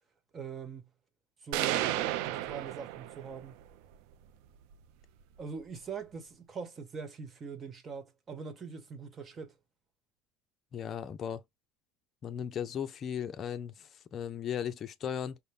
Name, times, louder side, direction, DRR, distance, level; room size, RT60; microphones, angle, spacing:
voice 1, 0.3-0.9 1.4-3.5 5.4-9.5, right 5 dB, 30° right, 1.2 m, -42 dB
sound 1, 1.5-3.5, right 14 dB, 70° right, 0.5 m, -32 dB
voice 2, 10.7-11.4 12.2-15.4, left 8 dB, 35° left, 0.6 m, -36 dB
5.5 x 2.2 x 3.3 m
supercardioid pair, 120°, 0 cm